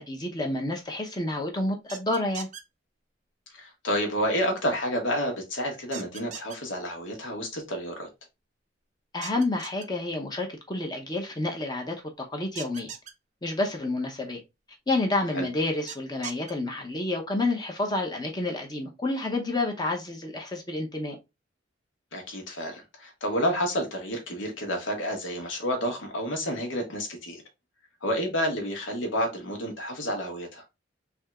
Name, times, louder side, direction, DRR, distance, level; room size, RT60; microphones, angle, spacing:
voice 1, 0.0-2.5 9.1-12.9 13.4-14.4 14.9-21.2, left 2 dB, 20° left, 0.7 m, -29 dB
sound 1, 1.9-2.6 5.9-6.6 9.2-9.9 12.6-13.1 15.9-16.5, right 8 dB, 40° right, 0.5 m, -39 dB
voice 2, 3.5-8.1 15.3-15.5 22.1-27.4 28.0-30.6, equal, 85° left, 1.3 m, -30 dB
3.5 x 2.8 x 3.4 m
head